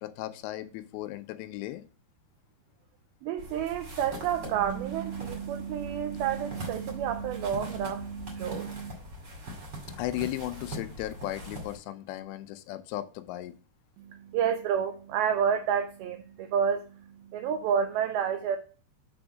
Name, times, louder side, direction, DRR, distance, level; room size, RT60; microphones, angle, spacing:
voice 1, 0.0-1.8 10.0-13.5, left 14 dB, 90° left, 2.8 m, -36 dB
voice 2, 3.2-8.9 14.0-18.6, right 8 dB, 85° right, 2.2 m, -30 dB
sound 1, 3.4-11.8, equal, 35° right, 1.9 m, -42 dB
6.9 x 3.5 x 6.2 m
omnidirectional pair, 4.9 m